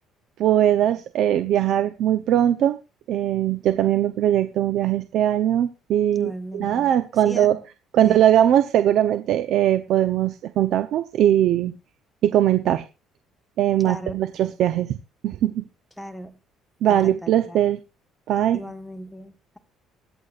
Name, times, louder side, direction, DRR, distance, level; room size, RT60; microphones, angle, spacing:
voice 1, 0.4-2.8 3.1-7.6 7.9-11.7 12.2-12.8 13.6-15.0 15.2-15.6 16.8-17.8 18.3-18.6, right 11 dB, 65° right, 0.7 m, -20 dB
voice 2, 6.1-7.6 8.0-8.2 13.8-14.2 16.0-16.4 16.9-17.6 18.5-19.6, equal, 5° left, 1.3 m, -37 dB
23.0 x 8.2 x 2.5 m
cardioid pair, 120°, 0 cm